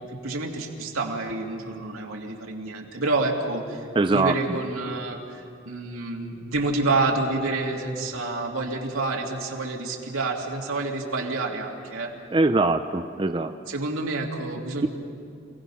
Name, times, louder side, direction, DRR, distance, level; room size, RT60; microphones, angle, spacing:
voice 1, 0.0-12.1 13.7-14.9, right 2 dB, 85° right, 0 dB, 2.5 m, -28 dB
voice 2, 4.0-4.3 12.3-13.5, right 3 dB, 25° right, 8 dB, 0.4 m, -22 dB
28.5 x 17.5 x 5.7 m, 2.4 s
head